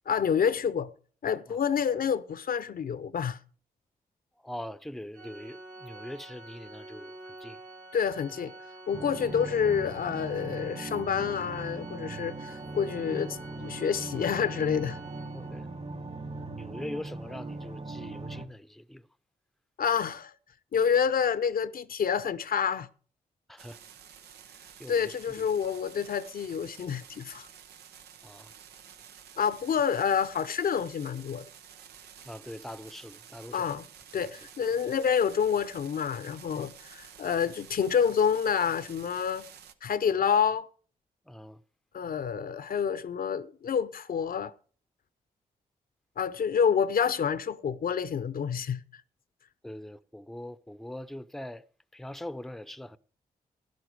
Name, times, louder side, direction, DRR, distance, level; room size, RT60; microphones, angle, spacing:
voice 1, 0.1-0.9 1.2-3.4 7.9-8.5 8.9-15.0 19.8-20.3 20.7-22.9 24.9-27.5 29.4-31.5 33.5-33.9 34.1-39.5 39.8-40.7 41.9-44.5 46.2-48.8, left 7 dB, 65° left, 0.7 m, -28 dB
voice 2, 4.4-7.6 15.3-15.7 16.5-19.1 23.5-23.8 24.5-25.5 28.2-28.5 32.2-33.8 41.3-41.6 49.6-51.7 51.9-53.0, left 1 dB, ahead, 0.7 m, -42 dB
Organ, 5.1-15.8, right 2 dB, 65° right, 2.9 m, -47 dB
sound 1, 8.9-18.5, right 3 dB, 40° right, 2.1 m, -40 dB
sound 2, 23.6-39.7, right 8 dB, 90° right, 0.9 m, -51 dB
12.0 x 11.0 x 4.7 m
supercardioid pair, 45°, 16 cm